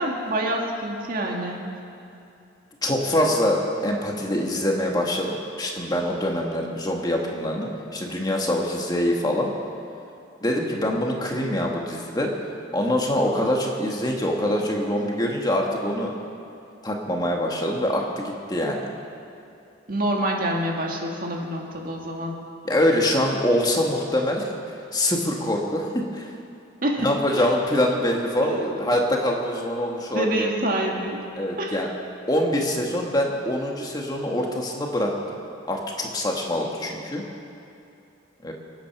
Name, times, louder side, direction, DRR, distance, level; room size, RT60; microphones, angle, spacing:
voice 1, 0.0-1.7 19.9-22.4 26.8-27.4 28.4-28.6 30.1-31.2 31.6-31.8, right 1 dB, 50° right, 0 dB, 2.0 m, -27 dB
voice 2, 2.8-9.5 10.4-12.3 12.7-16.2 16.8-18.9 22.6-24.5 24.9-26.3 27.0-30.5 31.4-31.9 32.3-35.4 35.7-37.2 38.4-38.5, left 1 dB, 20° left, 0 dB, 1.7 m, -24 dB
26.0 x 9.2 x 5.9 m, 2.6 s
head